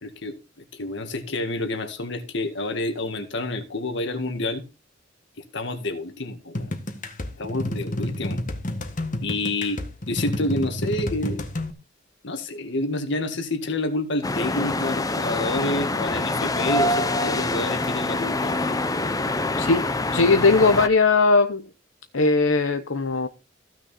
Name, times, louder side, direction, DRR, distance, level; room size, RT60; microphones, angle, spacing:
voice 1, 0.0-0.4 0.7-4.6 5.5-6.8 7.4-8.4 9.2-9.8 10.1-11.4 12.2-18.8, left 2 dB, 65° left, 1.9 m, -28 dB
sound 1, 6.5-11.7, left 1 dB, 40° left, 1.5 m, -30 dB
sound 2, 14.2-20.9, left 2 dB, 20° left, 0.8 m, -25 dB
voice 2, 20.1-21.7 22.1-23.3, left 3 dB, 80° left, 0.9 m, -19 dB
15.0 x 6.3 x 4.2 m
head